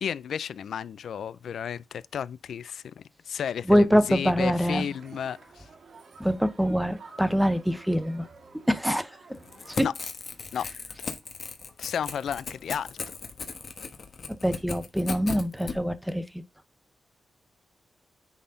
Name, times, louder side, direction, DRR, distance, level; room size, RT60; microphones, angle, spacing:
voice 1, 0.0-5.7 9.8-9.9 10.5-10.7 11.8-13.0, left 8 dB, 80° left, 0.3 m, -33 dB
voice 2, 3.7-4.9 6.2-8.3 8.7-9.9 14.3-16.4, equal, ahead, 0.9 m, -25 dB
Crowd, 4.7-9.9, right 4 dB, 75° right, 2.0 m, -51 dB
Crackle / Tearing, 9.4-15.8, left 5 dB, 55° left, 1.4 m, -37 dB
9.5 x 4.1 x 3.9 m
cardioid pair, 85°, 0 cm